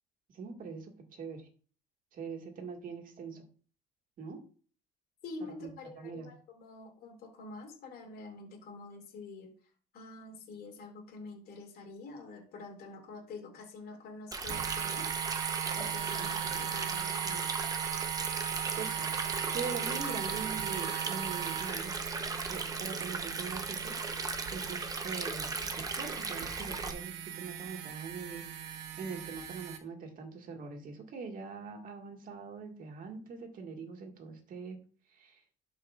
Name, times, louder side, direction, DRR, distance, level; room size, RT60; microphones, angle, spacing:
voice 1, 0.3-1.5 2.1-3.4 4.2-4.4 5.6-5.7 6.0-6.3 16.2-16.6 18.8-19.1 19.5-22.0 22.5-28.5 29.0-34.8 35.1-35.4, right 5 dB, 55° right, 3 dB, 1.8 m, -43 dB
voice 2, 5.2-9.5 9.9-15.1 15.7-17.5, left 3 dB, 65° left, 0 dB, 2.3 m, -47 dB
Stream, 14.3-26.9, right 3 dB, 20° right, 0.8 m, -38 dB
sound 1, 14.5-29.8, right 9 dB, 85° right, 1.1 m, -38 dB
12.0 x 4.8 x 2.4 m, 0.41 s
cardioid pair, 110°, 17 cm